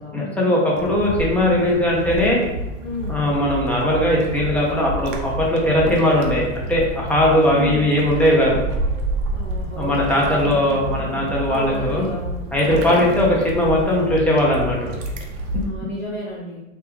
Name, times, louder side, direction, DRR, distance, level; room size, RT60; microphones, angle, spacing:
voice 1, 0.1-2.4 3.1-8.6 9.8-12.0 12.5-14.9 15.5-15.7, left 1 dB, 5° left, -4 dB, 0.8 m, -19 dB
sound 1, 0.7-15.7, right 1 dB, 35° right, 0.6 m, -29 dB
voice 2, 2.8-3.2 7.5-7.9 9.3-10.6 11.5-12.4 12.9-13.7 15.6-16.6, left 1 dB, 75° left, -6 dB, 1.2 m, -32 dB
3.3 x 3.0 x 3.4 m, 0.97 s
hypercardioid pair, 120°, 39 cm